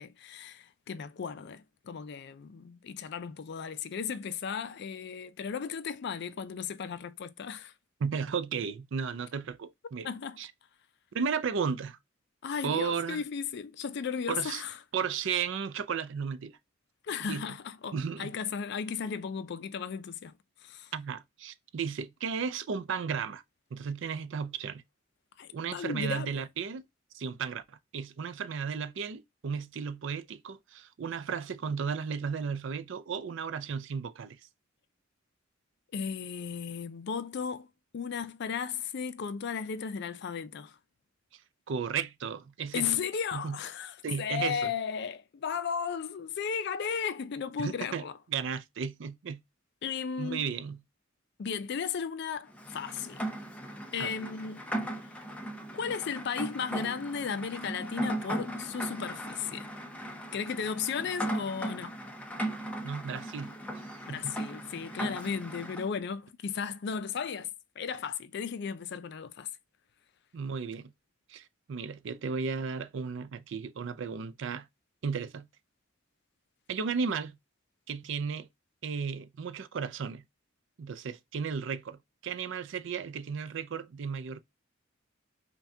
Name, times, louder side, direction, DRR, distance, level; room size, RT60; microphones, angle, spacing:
voice 1, 0.0-7.7 10.0-10.4 12.4-14.8 17.0-20.9 25.4-26.4 35.9-37.7 37.9-40.8 42.7-48.2 49.8-50.5 51.4-53.3 53.9-54.7 55.7-59.7 60.3-62.0 64.1-69.5, left 6 dB, 55° left, 0.4 m, -35 dB
voice 2, 8.0-10.1 10.4-10.5 11.1-12.0 12.6-13.2 14.3-14.6 14.9-16.5 17.3-17.4 17.9-18.3 20.9-23.4 23.7-24.8 25.5-26.8 27.1-34.4 41.7-42.9 43.3-43.6 44.0-44.6 47.6-48.0 48.3-49.4 50.2-50.8 54.0-54.1 62.8-63.5 64.1-64.4 70.3-70.9 71.3-74.7 75.0-75.5 76.7-77.4 77.9-78.5 78.8-80.2 80.8-84.4, right 6 dB, 60° right, 0.4 m, -34 dB
Rain, 52.5-65.9, right 1 dB, 5° left, 0.5 m, -37 dB
5.7 x 2.3 x 2.7 m
head